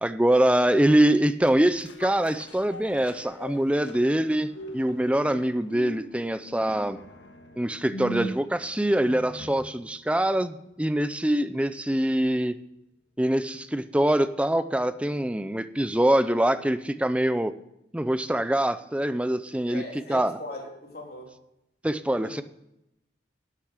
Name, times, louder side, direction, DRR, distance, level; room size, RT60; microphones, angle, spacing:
voice 1, 0.0-7.0 7.6-12.6 13.2-17.5 17.9-19.8 20.1-20.4 21.8-22.4, right 1 dB, 5° right, 12 dB, 0.5 m, -24 dB
sound 1, 1.2-9.8 10.2-10.3, right 1 dB, 85° left, 1.6 m, -41 dB
voice 2, 19.7-21.3 22.2-22.3, left 1 dB, 55° left, -1 dB, 3.3 m, -40 dB
11.5 x 8.5 x 6.5 m, 0.83 s
head